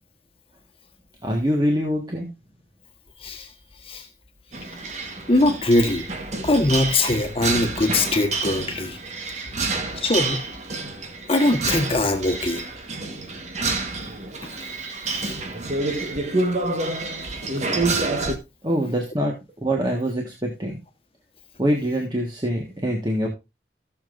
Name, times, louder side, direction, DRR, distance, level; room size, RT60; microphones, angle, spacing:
voice 1, 1.2-2.3 18.6-19.3 19.6-20.8 21.6-23.3, equal, 25° right, 1.6 m, -24 dB
sound 1, 4.5-18.3, right 3 dB, 40° right, 1.4 m, -28 dB
voice 2, 5.3-6.0 6.4-9.0 10.0-10.4 11.3-12.6, left 2 dB, 30° left, 1.3 m, -21 dB
16.0 x 7.1 x 2.6 m
head